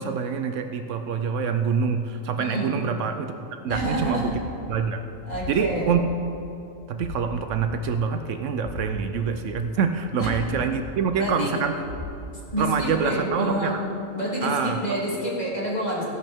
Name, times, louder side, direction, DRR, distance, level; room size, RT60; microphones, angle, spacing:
voice 1, 0.0-3.3 3.6-4.3 4.7-5.0 5.5-6.1 6.9-11.7 12.6-13.8 14.4-14.8, right 6 dB, 75° right, 7 dB, 0.9 m, -26 dB
voice 2, 2.4-2.8 3.7-4.3 5.2-5.9 10.2-10.3 11.2-11.6 12.5-13.8 14.1-16.0, equal, 30° left, -6 dB, 2.8 m, -28 dB
sound 1, 3.7-3.9 4.3-4.5 5.3-5.6 6.0-6.1 7.0-7.2 7.6-7.7 8.6-8.8 9.2-9.3 10.2-10.5 10.8-10.9 11.8-12.1 12.5-12.6, left 3 dB, 70° left, 1.9 m, -36 dB
15.0 x 11.0 x 3.5 m, 2.7 s
omnidirectional pair, 1.4 m